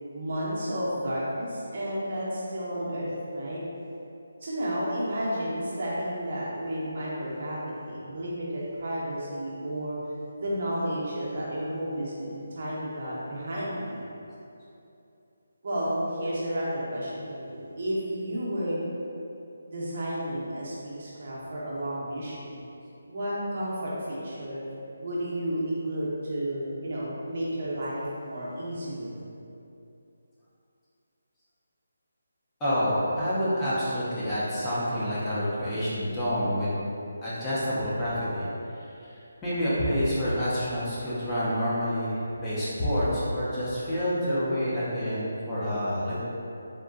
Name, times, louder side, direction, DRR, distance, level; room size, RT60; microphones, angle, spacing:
voice 1, 0.1-3.6 4.4-10.0 10.4-14.1 15.6-18.8 19.7-22.6 23.1-24.6 25.0-29.2, equal, 50° right, -7 dB, 0.7 m, -32 dB
voice 2, 32.6-36.7 37.2-38.5 38.8-39.1 39.4-46.2, equal, 10° left, -12 dB, 0.5 m, -28 dB
3.6 x 2.2 x 2.5 m, 2.8 s
figure-of-eight pair, 165°, 0 cm